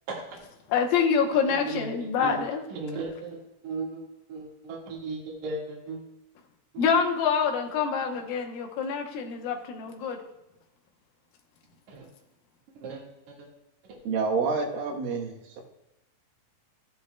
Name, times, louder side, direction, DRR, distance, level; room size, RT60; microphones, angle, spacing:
voice 1, 0.1-0.4 1.4-2.3 2.7-4.0 4.3-6.0 6.7-6.9 11.9-12.1 12.7-13.0 13.4-13.5 13.9-14.0, right 3 dB, 60° right, -3 dB, 3.0 m, -36 dB
voice 2, 0.7-2.6 6.8-10.2, left 6 dB, 90° left, 2 dB, 2.7 m, -26 dB
voice 3, 14.0-15.6, right 4 dB, 85° right, 0 dB, 2.9 m, -28 dB
14.0 x 10.5 x 2.2 m, 0.90 s
omnidirectional pair, 4.0 m